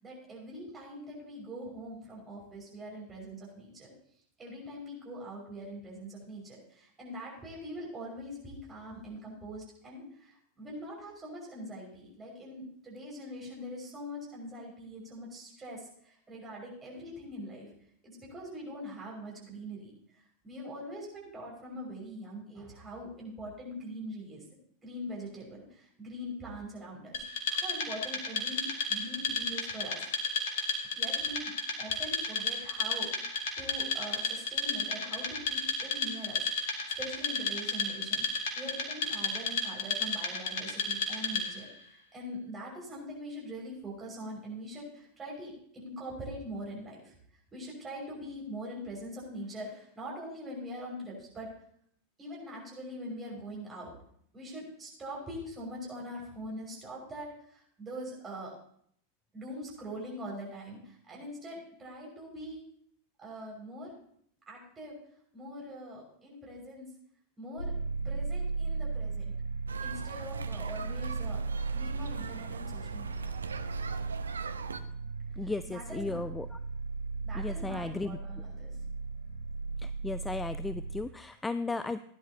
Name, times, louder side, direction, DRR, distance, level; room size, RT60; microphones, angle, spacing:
voice 1, 0.0-3.9 4.4-17.7 18.0-19.9 20.4-24.4 24.8-27.2 27.5-30.0 31.0-33.1 33.6-41.7 42.1-47.1 47.5-51.5 52.2-53.9 54.3-58.5 59.3-60.8 61.1-62.6 63.2-63.9 64.5-65.0 65.3-66.9 67.4-67.7 68.0-69.3 69.8-71.4 71.7-73.3 75.7-76.2 77.2-78.7, equal, 20° right, -3 dB, 6.0 m, -43 dB
Wood, 27.1-41.7, left 3 dB, 55° left, 2.2 m, -33 dB
sound 1, 67.6-81.0, right 4 dB, 80° left, 4.2 m, -36 dB
sound 2, 69.7-74.8, right 5 dB, 70° right, 0.7 m, -41 dB
voice 2, 75.4-76.6 77.3-78.2 79.8-82.0, left 3 dB, 10° left, 13 dB, 0.4 m, -35 dB
17.0 x 10.5 x 2.9 m, 0.66 s
figure-of-eight pair, 90°, 0 cm